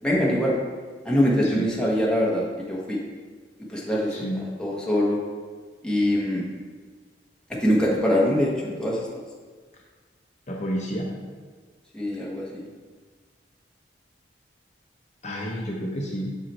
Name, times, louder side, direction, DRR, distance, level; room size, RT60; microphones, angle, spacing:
voice 1, 0.0-0.5 1.0-3.0 3.7-4.1 4.6-5.2 5.8-6.4 7.6-9.1 11.9-12.6, equal, 5° left, -5 dB, 1.2 m, -23 dB
voice 2, 4.1-4.4 10.5-11.1 15.2-16.3, equal, 40° left, -1 dB, 0.8 m, -30 dB
6.1 x 5.6 x 4.3 m, 1.5 s
head